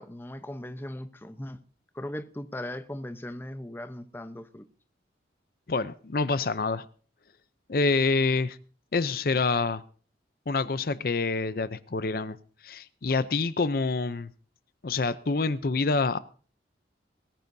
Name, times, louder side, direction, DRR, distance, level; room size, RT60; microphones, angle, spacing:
voice 1, 0.0-1.6 1.9-4.7, left 1 dB, 10° left, 0.8 m, -38 dB
voice 2, 5.7-6.8 7.7-8.6 8.9-9.8 10.5-12.4 12.6-14.3 14.8-16.2, left 3 dB, 55° left, 0.6 m, -27 dB
21.5 x 15.0 x 2.7 m
head